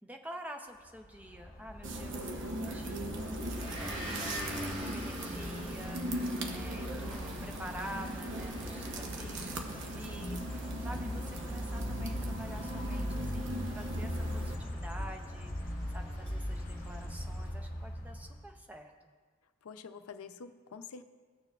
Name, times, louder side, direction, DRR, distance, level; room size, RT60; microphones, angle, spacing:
voice 1, 0.0-19.1, equal, 5° right, 4 dB, 0.5 m, -48 dB
sound 1, 1.0-18.6, equal, 40° left, 1.0 m, -40 dB
sound 2, 1.8-14.6, right 1 dB, 60° right, 0.9 m, -40 dB
Motor vehicle (road) / Engine, 3.2-17.4, equal, 25° right, 1.3 m, -45 dB
voice 2, 10.1-10.5 19.6-21.0, left 4 dB, 90° left, 10 dB, 0.5 m, -45 dB
16.5 x 6.8 x 2.4 m, 1.5 s
head